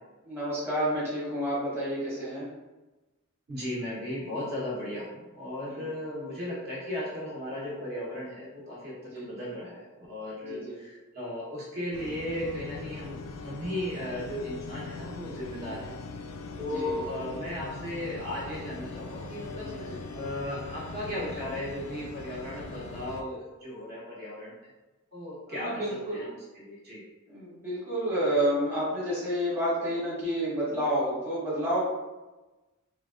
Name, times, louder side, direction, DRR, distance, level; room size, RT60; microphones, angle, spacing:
voice 1, 0.3-2.5 5.7-5.9 9.1-9.3 10.5-10.8 15.6-15.8 16.7-17.0 19.6-20.0 25.5-26.2 27.3-31.8, equal, 10° right, -10 dB, 0.9 m, -30 dB
voice 2, 3.5-15.9 16.6-24.6 25.1-25.8 26.1-27.0, left 1 dB, 50° right, -7 dB, 0.9 m, -36 dB
sound 1, 11.9-23.2, left 3 dB, 90° left, 0.3 m, -41 dB
3.3 x 2.2 x 2.4 m, 1.1 s
head